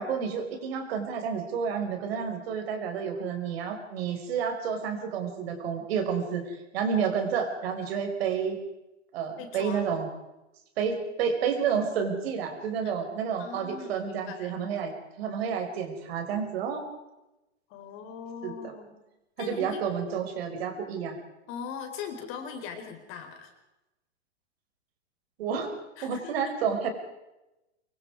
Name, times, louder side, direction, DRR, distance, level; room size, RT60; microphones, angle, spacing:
voice 1, 0.0-8.6 9.1-10.1 10.8-16.8 18.4-18.7 19.4-21.2 25.4-25.7 26.0-26.9, right 6 dB, 55° right, 5 dB, 5.3 m, -30 dB
voice 2, 9.4-9.8 12.8-12.9 13.4-14.6 17.7-19.0 19.4-19.8 21.5-23.5 26.0-26.5, left 7 dB, 35° left, 6 dB, 4.5 m, -40 dB
25.0 x 24.0 x 4.8 m, 0.95 s
hypercardioid pair, 125°, 36 cm